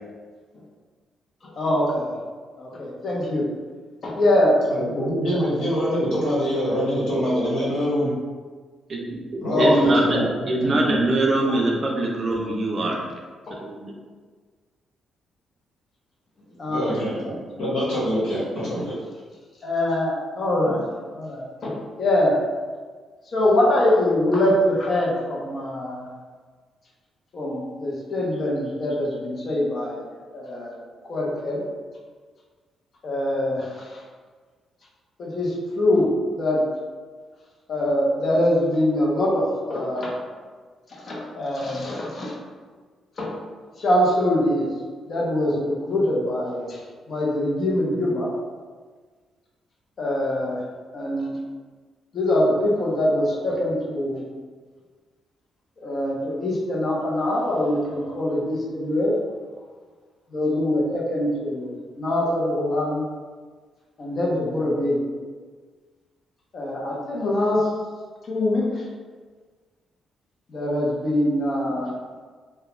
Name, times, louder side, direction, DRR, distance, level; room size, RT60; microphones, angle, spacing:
voice 1, 1.4-2.2 2.6-3.5 4.0-4.6 9.5-10.0 13.5-13.6 16.6-17.0 19.6-20.8 21.1-22.4 23.3-26.1 27.3-30.0 30.3-31.6 33.0-34.0 35.2-36.7 37.7-40.2 40.9-42.4 43.2-43.3 43.8-44.7 45.1-46.8 47.1-48.3 50.0-50.6 50.9-51.3 52.1-54.2 55.8-59.2 60.3-63.1 64.0-65.0 66.5-67.7 68.2-68.8 70.5-71.9, left 1 dB, 45° left, -4 dB, 0.6 m, -23 dB
voice 2, 4.7-8.1 9.4-11.0 16.6-18.9, equal, 75° left, -8 dB, 1.1 m, -24 dB
voice 3, 8.9-10.2 10.5-13.0 13.5-13.9, right 2 dB, 40° right, -1 dB, 0.4 m, -23 dB
2.3 x 2.1 x 2.9 m, 1.5 s
cardioid pair, 125°, 0 cm